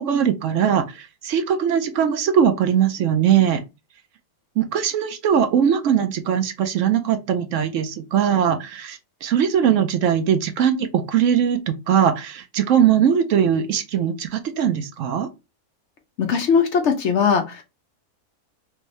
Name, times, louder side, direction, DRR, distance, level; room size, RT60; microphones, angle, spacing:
voice 1, 0.0-3.6 4.6-15.3, right 8 dB, 65° right, 0.8 m, -20 dB
voice 2, 16.2-17.6, left 6 dB, 60° left, 0.8 m, -19 dB
3.4 x 2.6 x 3.1 m
omnidirectional pair, 1.6 m